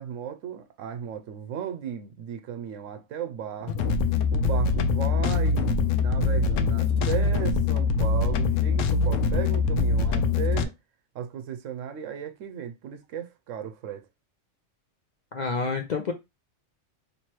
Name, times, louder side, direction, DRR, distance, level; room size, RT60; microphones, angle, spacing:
voice 1, 0.0-3.9 4.3-10.7 11.1-14.0, right 8 dB, 90° right, 1.0 m, -36 dB
sound 1, 3.6-10.6, left 4 dB, 85° left, 0.9 m, -23 dB
voice 2, 15.3-16.1, left 4 dB, 55° left, 0.5 m, -28 dB
3.1 x 3.0 x 4.4 m
omnidirectional pair, 1.3 m